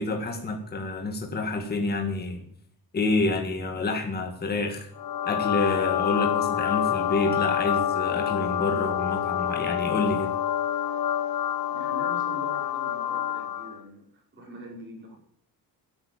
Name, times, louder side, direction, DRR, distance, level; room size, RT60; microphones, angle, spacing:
voice 1, 0.0-2.4 2.9-4.9 5.2-10.3, left 3 dB, 25° left, 3 dB, 1.9 m, -28 dB
sound 1, 5.0-13.8, left 10 dB, 75° left, 1.2 m, -27 dB
voice 2, 11.7-15.1, equal, 30° right, -3 dB, 5.2 m, -43 dB
12.5 x 9.0 x 8.9 m, 0.69 s
wide cardioid pair, 180°, 36 cm